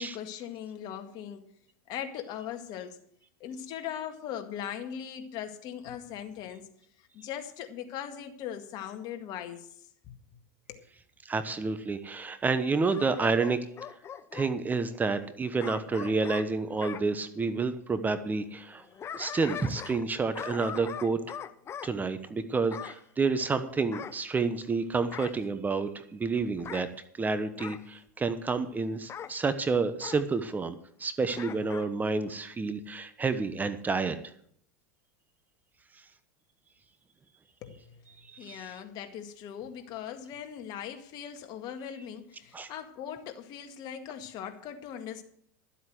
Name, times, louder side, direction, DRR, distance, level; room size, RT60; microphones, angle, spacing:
voice 1, 0.0-1.5 1.9-3.0 3.4-6.7 7.1-9.7 10.1-10.2 10.7-10.8 37.6-38.0 38.4-45.2, left 9 dB, 50° left, 1.9 m, -39 dB
voice 2, 11.2-13.6 14.3-18.8 19.1-21.2 21.8-26.9 27.2-34.2 38.2-38.7 42.5-42.7, right 4 dB, 20° right, 1.1 m, -29 dB
Bark / Growling, 12.9-14.5 15.6-17.1 18.7-20.1 20.3-21.9 22.7-23.0 23.9-24.7 25.1-25.5 26.6-26.9 27.6-27.9 29.1-29.4 30.0-30.2 31.3-31.9 32.3-32.4, left 8 dB, 30° left, 0.7 m, -41 dB
12.0 x 8.1 x 7.8 m
hypercardioid pair, 110°, 9 cm